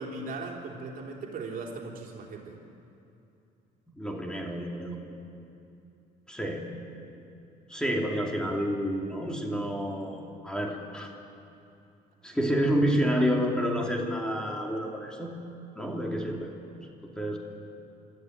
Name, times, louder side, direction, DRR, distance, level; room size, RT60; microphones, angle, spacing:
voice 1, 0.0-2.6, right 3 dB, 55° right, 0 dB, 3.6 m, -38 dB
voice 2, 4.0-5.0 6.3-6.7 7.7-11.1 12.2-15.3 15.8-16.5 17.2-17.4, equal, 5° left, 0 dB, 2.9 m, -29 dB
26.5 x 14.0 x 9.4 m, 2.7 s
cardioid pair, 110°, 17 cm